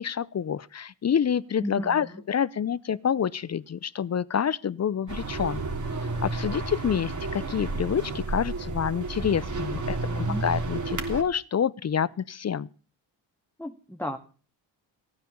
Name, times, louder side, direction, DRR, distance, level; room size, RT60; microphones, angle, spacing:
voice 1, 0.0-5.6 6.2-12.7, left 8 dB, 30° left, 0.7 m, -27 dB
voice 2, 1.6-2.2 10.1-10.4 13.6-14.2, equal, 5° left, 1.9 m, -34 dB
sound 1, 5.1-11.2, right 3 dB, 35° right, 3.2 m, -31 dB
16.5 x 9.3 x 7.0 m
supercardioid pair, 55°, 49 cm